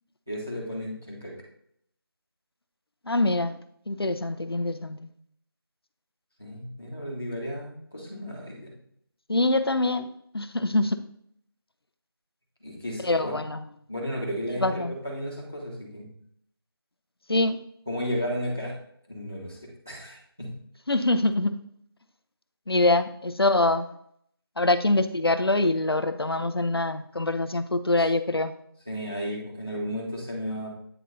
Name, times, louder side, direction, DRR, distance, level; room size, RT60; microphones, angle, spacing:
voice 1, 0.3-1.3 6.4-8.7 12.6-13.3 13.9-16.1 17.9-18.7 19.1-20.5 28.8-30.7, equal, 5° right, -10 dB, 0.7 m, -33 dB
voice 2, 3.1-3.6 3.9-5.1 9.3-11.0 13.0-13.6 14.6-14.9 17.3-17.6 20.9-21.6 22.7-23.9 24.6-28.5, left 2 dB, 75° left, 11 dB, 0.6 m, -24 dB
9.0 x 3.8 x 4.0 m, 0.69 s
figure-of-eight pair, 170°, 13 cm